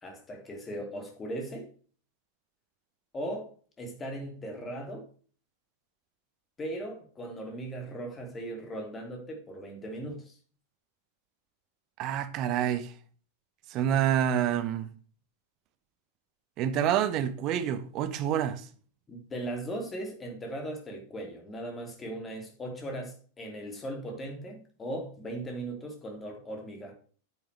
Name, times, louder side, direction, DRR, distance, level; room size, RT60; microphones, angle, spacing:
voice 1, 0.0-1.7 3.1-3.5 3.8-5.1 6.6-10.4 19.1-26.9, right 1 dB, 20° left, 2.9 m, -38 dB
voice 2, 12.0-12.9 13.7-14.9 16.6-18.6, right 10 dB, 40° right, 1.0 m, -27 dB
9.3 x 8.5 x 3.4 m
figure-of-eight pair, 90°, 0 cm